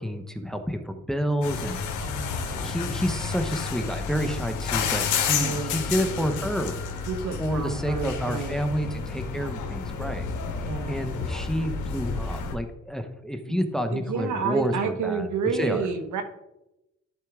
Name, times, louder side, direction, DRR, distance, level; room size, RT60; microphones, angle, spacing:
voice 1, 0.0-1.8 2.5-6.8 7.4-10.3 10.9-15.3 15.5-15.9, equal, ahead, 7 dB, 0.8 m, -29 dB
sound 1, 1.4-12.5, left 6 dB, 80° left, 1.5 m, -31 dB
voice 2, 2.0-2.8 5.4-5.9 7.1-8.6 10.6-11.0 13.5-13.6 13.9-16.2, right 5 dB, 75° right, 7 dB, 1.2 m, -30 dB
12.0 x 4.6 x 3.6 m, 0.92 s
cardioid pair, 90°, 30 cm